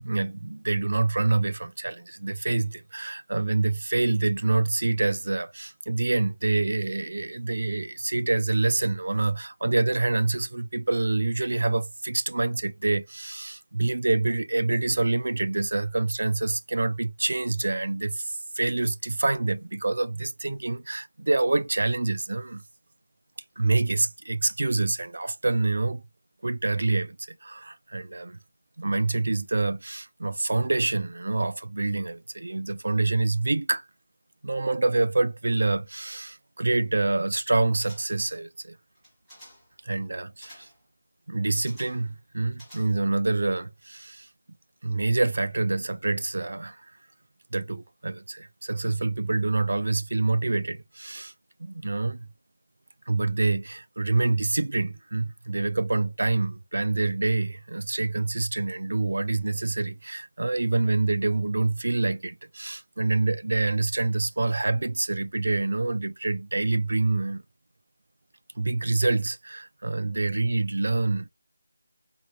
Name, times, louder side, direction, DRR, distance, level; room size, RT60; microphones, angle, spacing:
voice 1, 0.0-22.6 23.6-26.0 26.4-28.4 28.8-33.8 34.4-38.8 39.8-40.7 41.3-44.3 44.8-46.8 47.5-51.3 51.6-52.3 53.1-67.4 68.6-71.3, right 2 dB, 50° right, 0.3 m, -26 dB
sound 1, 37.8-38.3 38.9-39.7 40.4-40.8 41.7-42.1 42.5-43.2 43.5-43.6, equal, 5° right, 1.1 m, -51 dB
3.6 x 2.3 x 2.8 m
figure-of-eight pair, 180°, 0 cm